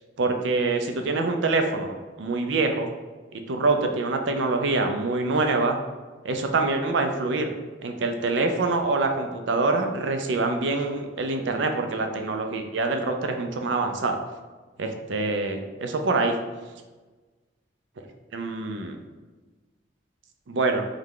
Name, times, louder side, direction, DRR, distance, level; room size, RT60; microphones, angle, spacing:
voice 1, 0.2-2.9 3.3-5.8 6.2-7.5 7.8-14.2 14.8-16.3 18.3-19.0 20.5-20.9, right 3 dB, 85° right, 5 dB, 0.5 m, -25 dB
3.5 x 3.2 x 3.7 m, 1.3 s
head